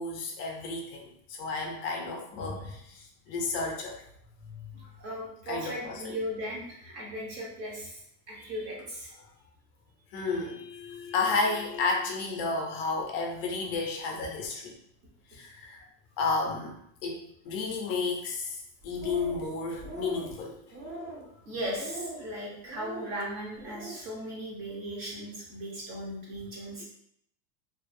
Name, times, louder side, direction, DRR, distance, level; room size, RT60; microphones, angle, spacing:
voice 1, 0.0-4.0 4.4-4.9 5.5-6.1 10.1-14.8 15.3-15.9 16.2-20.6, left 3 dB, 40° left, 1 dB, 0.5 m, -32 dB
voice 2, 4.7-9.1 19.9-20.0 20.9-26.8, equal, 25° right, -4 dB, 0.7 m, -38 dB
sound 1, 18.8-19.5 19.8-20.3 20.7-21.3 21.7-22.2 22.7-23.1 23.5-24.0, right 2 dB, 55° right, 1.2 m, -41 dB
2.6 x 2.3 x 2.5 m, 0.71 s
supercardioid pair, 170°, 48 cm